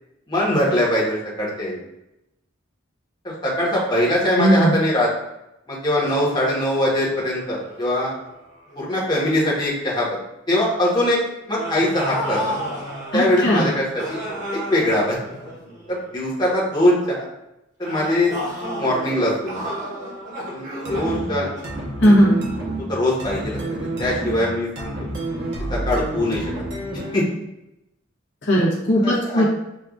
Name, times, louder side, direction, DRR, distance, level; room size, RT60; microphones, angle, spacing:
voice 1, 0.3-1.8 3.4-5.1 5.7-8.1 8.7-10.2 10.5-11.2 11.5-12.4 13.1-13.8 14.1-14.2 14.7-15.2 15.9-17.1 17.8-18.4 18.8-19.6 20.5-20.6 20.9-21.5 22.9-23.6 24.0-25.1 25.7-26.4 27.1-27.2 29.0-29.4, left 1 dB, 20° left, -6 dB, 1.0 m, -21 dB
voice 2, 4.4-4.8 13.1-13.7 22.0-22.4 28.4-29.4, equal, 55° left, -4 dB, 0.9 m, -17 dB
sound 1, 5.9-9.1 9.4-9.7 11.5-16.2 17.8-22.4, equal, 40° right, 1.0 m, -33 dB
sound 2, 20.9-27.3, right 2 dB, 65° right, 1.0 m, -29 dB
6.4 x 2.4 x 2.4 m, 0.89 s
head